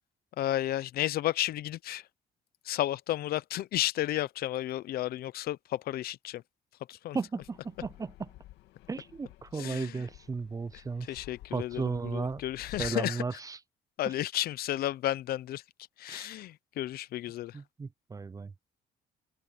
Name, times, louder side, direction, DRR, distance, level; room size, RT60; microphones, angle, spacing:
voice 1, 0.4-2.1 2.6-6.4 6.9-7.5 9.5-10.1 10.7-13.4 14.0-15.6 16.0-17.6, left 14 dB, 65° left, 0.7 m, -33 dB
voice 2, 7.1-8.1 8.9-11.2 11.5-12.4 12.8-13.6 14.1-14.2 16.1-16.3 17.5-18.5, right 4 dB, 20° right, 0.6 m, -35 dB
Fixed-wing aircraft airplane, 7.4-12.9, left 15 dB, 85° left, 2.4 m, -52 dB
cardioid pair, 110°, 17 cm